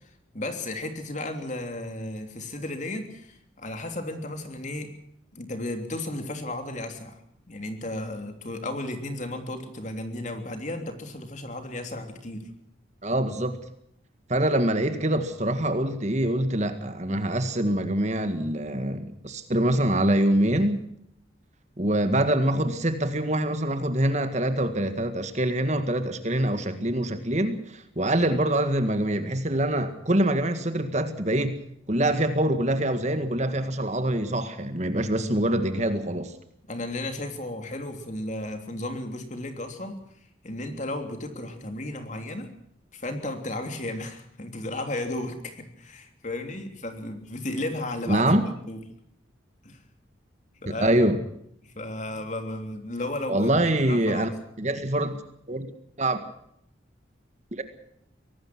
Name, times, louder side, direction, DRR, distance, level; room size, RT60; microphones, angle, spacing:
voice 1, 0.3-4.9 5.3-7.2 7.5-12.5 36.7-40.0 40.4-42.5 42.9-48.3 48.7-48.8 49.6-49.8 50.6-50.9 51.6-53.5 53.9-54.3, left 1 dB, 40° left, 6 dB, 3.2 m, -34 dB
voice 2, 13.0-13.6 14.3-20.9 21.8-31.5 31.9-36.3 48.1-48.4 50.7-51.2 53.3-54.3 54.6-55.2 55.5-55.7 56.0-56.2 57.6-57.7, right 1 dB, 35° right, 9 dB, 1.9 m, -25 dB
24.0 x 18.5 x 6.2 m, 0.71 s
head